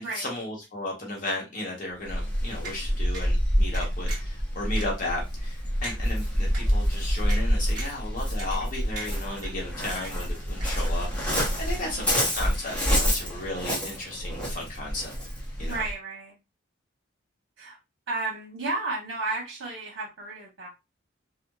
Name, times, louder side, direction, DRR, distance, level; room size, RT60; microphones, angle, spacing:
voice 1, 0.0-15.1 15.6-15.8, left 2 dB, 40° left, 0.9 m, -35 dB
Waves surf, 2.0-15.9, equal, 5° left, 0.7 m, -27 dB
sound 1, 2.6-2.8 3.1-3.3 3.7-4.3 4.7-4.9 5.4-5.5 5.8-6.0 6.5-6.6 7.3-7.4 7.7-8.0 8.4-8.7 8.9-9.5 9.9-10.3 10.6-10.7, right 3 dB, 40° right, 1.2 m, -39 dB
voice 2, 11.8-12.3 15.7-16.4 17.6-17.8 18.1-20.7, right 3 dB, 85° right, 1.0 m, -33 dB
2.8 x 2.1 x 2.2 m
head